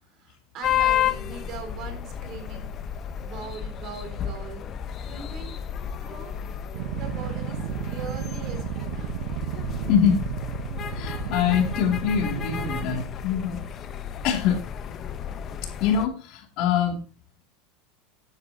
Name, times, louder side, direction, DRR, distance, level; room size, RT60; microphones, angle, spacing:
voice 1, 0.0-2.7 3.2-4.7 5.1-5.6 6.0-6.4 6.7-9.2, right 4 dB, 45° right, 5 dB, 4.0 m, -41 dB
sound 1, 0.6-16.1, left 9 dB, 35° left, 0.8 m, -32 dB
sound 2, 6.7-13.1, right 10 dB, 70° right, 0.9 m, -33 dB
voice 2, 9.9-10.2 10.9-13.6 14.2-14.6 15.8-17.0, left 8 dB, 55° left, 3 dB, 2.7 m, -24 dB
11.5 x 9.5 x 2.8 m, 0.33 s
supercardioid pair, 130°, 0 cm